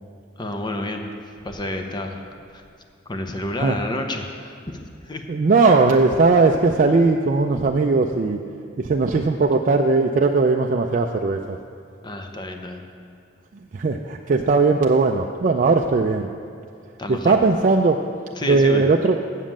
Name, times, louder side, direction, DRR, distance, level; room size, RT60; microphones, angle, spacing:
voice 1, 0.4-1.1 1.4-2.2 2.5-2.6 3.1-4.6 5.0-5.3 12.0-12.8 17.0-17.4 18.3-18.9, left 1 dB, 20° left, 4 dB, 0.7 m, -29 dB
voice 2, 5.3-8.4 8.8-11.6 13.7-16.3 17.1-18.0 18.5-19.2, right 3 dB, 40° right, 2 dB, 0.3 m, -18 dB
7.4 x 7.3 x 7.3 m, 2.4 s
head